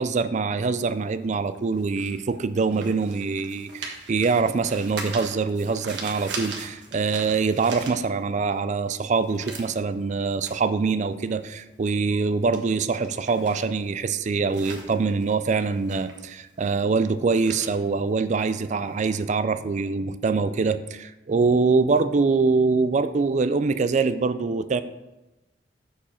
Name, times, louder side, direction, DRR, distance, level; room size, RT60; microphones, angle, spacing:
voice 1, 0.0-24.8, right 4 dB, 40° right, 13 dB, 0.4 m, -24 dB
sound 1, 0.8-8.5 8.8-18.9, right 4 dB, 75° right, 1.4 m, -41 dB
7.2 x 7.0 x 4.4 m, 1.0 s
head